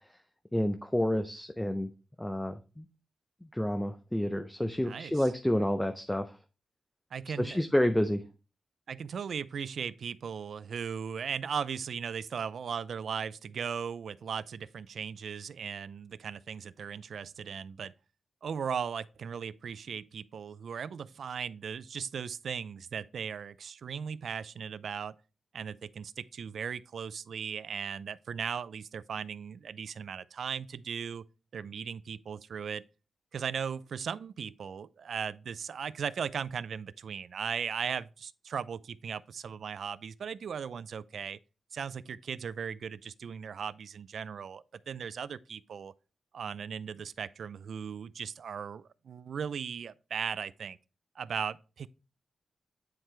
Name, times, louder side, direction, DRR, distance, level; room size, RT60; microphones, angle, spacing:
voice 1, 0.5-1.9 2.2-2.9 3.4-6.4 7.4-8.2, left 1 dB, 10° left, 0.6 m, -29 dB
voice 2, 4.8-5.3 7.1-7.7 8.9-17.9 18.4-25.2 25.5-31.2 31.5-32.8 33.3-41.4 41.7-45.9 46.3-50.8 51.2-51.9, right 7 dB, 70° right, 0.4 m, -37 dB
9.2 x 4.5 x 3.3 m
wide cardioid pair, 110°, 0 cm